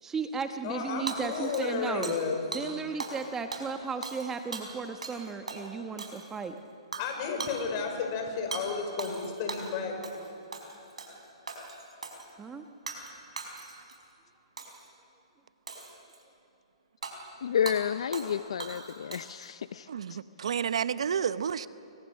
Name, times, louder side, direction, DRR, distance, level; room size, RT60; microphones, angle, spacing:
voice 1, 0.0-2.1 2.5-6.5 12.4-12.6, right 5 dB, 15° right, 7 dB, 1.2 m, -35 dB
voice 2, 0.6-2.4 7.0-10.4, left 5 dB, 40° left, 4 dB, 5.4 m, -33 dB
Hammer / Shatter, 1.1-2.3 2.5-2.7 3.0-3.2 3.5-5.2 5.5-5.6 6.0-6.4 6.9-7.1 7.4-7.6 8.5-8.6 9.0-9.7 10.0-10.3 10.5-11.1 11.5-12.3 12.9-13.1 13.4-14.0 14.6-14.9 15.7-16.2 17.0-17.1 17.7-17.8 18.1-18.3 18.6-19.4, right 4 dB, 85° right, 5.2 m, -39 dB
voice 3, 17.4-20.2, left 8 dB, 70° left, 14 dB, 0.6 m, -31 dB
voice 4, 19.9-21.7, right 7 dB, 70° right, 15 dB, 0.8 m, -30 dB
29.5 x 24.0 x 6.5 m, 2.8 s
hypercardioid pair, 135°, 3 cm